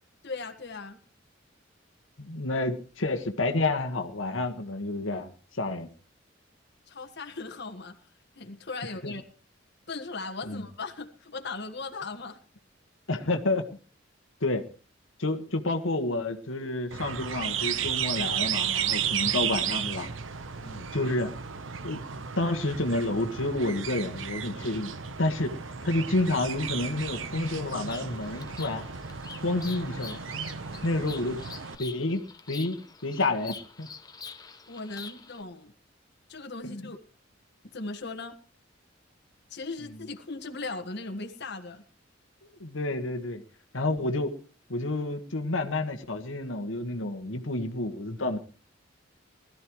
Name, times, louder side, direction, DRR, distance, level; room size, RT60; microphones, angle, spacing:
voice 1, 0.2-1.0 6.9-8.0 8.4-9.2 9.9-12.4 20.6-20.9 34.7-35.7 36.3-37.0 37.6-38.4 39.5-41.8, left 3 dB, 60° left, 5 dB, 1.5 m, -38 dB
voice 2, 2.2-5.9 9.0-9.1 10.4-10.6 13.1-13.7 14.4-14.7 15.2-20.1 20.9-21.3 21.8-22.0 22.4-25.6 25.8-28.9 29.4-30.2 30.8-31.4 31.8-33.9 36.6-36.9 42.6-43.4 43.7-44.4 44.7-48.4, left 2 dB, 90° left, 4 dB, 1.5 m, -29 dB
sound 1, 16.9-31.8, right 8 dB, 80° right, 1.0 m, -33 dB
Bird vocalization bird call bird song, 26.9-35.4, left 5 dB, 20° left, 1.1 m, -46 dB
20.5 x 13.5 x 3.1 m, 0.36 s
head